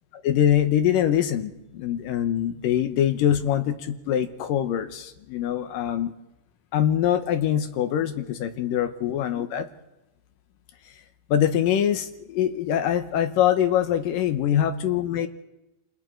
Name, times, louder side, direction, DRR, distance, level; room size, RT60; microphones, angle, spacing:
voice 1, 0.2-6.1 6.7-9.7 11.3-15.3, left 10 dB, 75° left, 9 dB, 2.5 m, -23 dB
28.5 x 20.0 x 4.5 m, 0.91 s
omnidirectional pair, 4.2 m